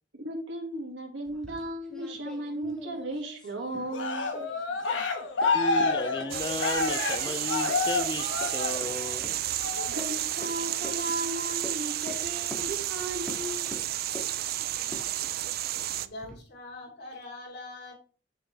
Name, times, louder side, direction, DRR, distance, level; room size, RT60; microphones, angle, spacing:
voice 1, 0.1-4.3 9.9-13.8, right 1 dB, 90° right, 2 dB, 2.1 m, -35 dB
sound 1, 1.2-4.1 4.3-5.1 5.4-5.5 5.8-5.9 6.2-6.3 6.9-7.0 7.3-7.4 7.7-7.8 8.1-8.5 8.8-8.9 9.2-9.3 10.0-10.1 10.4-10.5 10.8-11.0 11.6-11.8 12.1-12.2 12.5-12.6 13.3-13.4 13.7-14.3 14.8-16.4, left 1 dB, 5° left, 1.8 m, -43 dB
Cheering, 3.9-9.2 9.6-10.0, left 3 dB, 90° left, 1.2 m, -29 dB
voice 2, 5.5-9.4, left 2 dB, 25° left, 11 dB, 0.5 m, -34 dB
sound 2, 6.3-16.1, right 13 dB, 55° right, 0.4 m, -32 dB
voice 3, 15.9-17.9, left 2 dB, 60° left, -2 dB, 3.3 m, -43 dB
7.0 x 6.8 x 3.3 m, 0.40 s
head